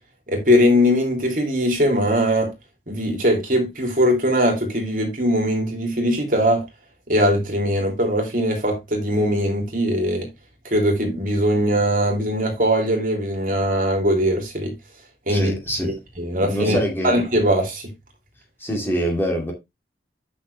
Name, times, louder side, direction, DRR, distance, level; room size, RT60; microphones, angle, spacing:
voice 1, 0.3-2.5 2.9-6.6 7.1-10.3 10.6-14.7 15.3-17.9, equal, 50° right, 3.3 m, -21 dB
voice 2, 15.3-16.0 16.3-17.2 18.6-19.5, equal, 15° left, 2.6 m, -25 dB
10.0 x 6.1 x 3.4 m
head